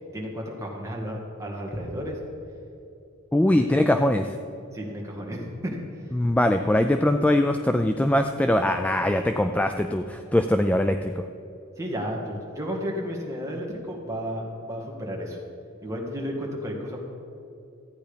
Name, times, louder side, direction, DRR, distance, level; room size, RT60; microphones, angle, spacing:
voice 1, 0.1-2.2 3.4-3.7 4.7-5.8 11.8-15.4 15.8-17.0, equal, 15° right, -2 dB, 2.0 m, -33 dB
voice 2, 3.3-4.3 6.1-11.1, left 1 dB, 5° left, 7 dB, 0.3 m, -22 dB
14.0 x 9.1 x 5.2 m, 2.7 s
head